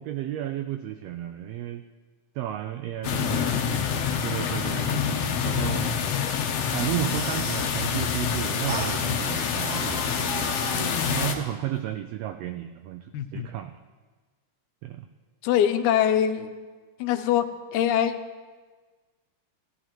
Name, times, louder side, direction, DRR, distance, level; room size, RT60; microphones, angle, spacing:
voice 1, 0.0-1.8 2.3-3.5 4.2-6.0 6.7-13.7 14.8-15.0, right 12 dB, 85° right, 8 dB, 1.4 m, -33 dB
sound 1, 3.0-11.3, left 7 dB, 70° left, 1.8 m, -27 dB
sound 2, 6.9-7.7 8.7-9.0 9.6-11.5, right 3 dB, 45° right, 2.1 m, -37 dB
voice 2, 10.7-11.3 13.1-13.5 15.4-16.6 17.0-17.5 17.7-18.2, left 10 dB, 85° left, 10 dB, 2.0 m, -24 dB
15.5 x 14.0 x 3.0 m, 1.4 s
omnidirectional pair, 3.4 m